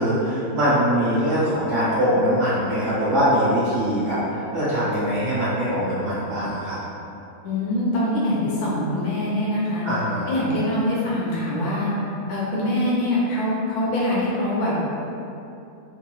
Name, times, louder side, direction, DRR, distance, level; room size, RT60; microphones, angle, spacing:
voice 1, 0.0-6.8 9.8-10.3, equal, 50° right, -12 dB, 1.6 m, -22 dB
voice 2, 7.4-9.9 10.3-11.9 12.3-14.8, left 1 dB, 80° left, -6 dB, 1.2 m, -23 dB
3.2 x 2.9 x 2.3 m, 2.8 s
omnidirectional pair, 1.6 m